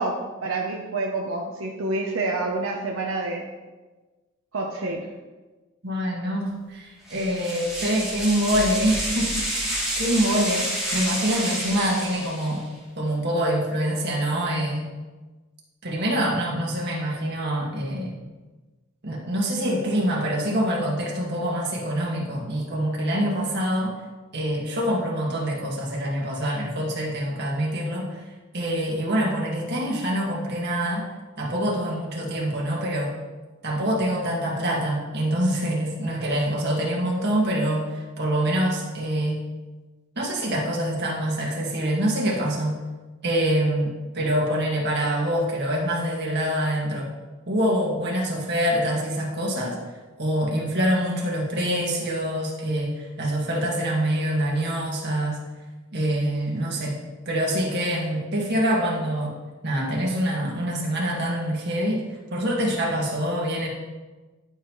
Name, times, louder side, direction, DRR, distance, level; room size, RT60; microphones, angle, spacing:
voice 1, 0.0-3.5 4.5-5.1, right 2 dB, 85° right, 0 dB, 0.8 m, -28 dB
voice 2, 5.8-12.6 13.0-14.9 15.8-18.1 19.0-23.9 24.3-28.2 28.5-31.1 31.4-33.1 33.6-39.4 40.2-42.8 43.2-47.1 47.5-49.8 50.2-55.4 55.9-57.0 57.3-59.3 59.6-62.0 62.3-63.7, equal, 55° right, -3 dB, 1.9 m, -25 dB
sound 1, 7.1-12.7, right 1 dB, 5° right, 2.4 m, -29 dB
11.0 x 5.5 x 3.1 m, 1.2 s
head